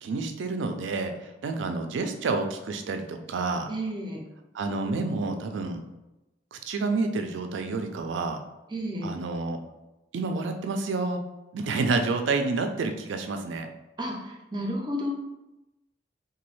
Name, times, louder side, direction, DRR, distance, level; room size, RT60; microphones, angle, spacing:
voice 1, 0.0-3.7 4.5-5.8 6.5-8.4 9.0-9.6 10.1-11.2 11.5-13.7, right 3 dB, 90° right, 6 dB, 0.4 m, -29 dB
voice 2, 3.7-4.2 8.7-9.1 14.0-14.1 14.5-15.1, equal, 25° right, 0 dB, 0.5 m, -31 dB
3.0 x 2.3 x 3.1 m, 0.97 s
head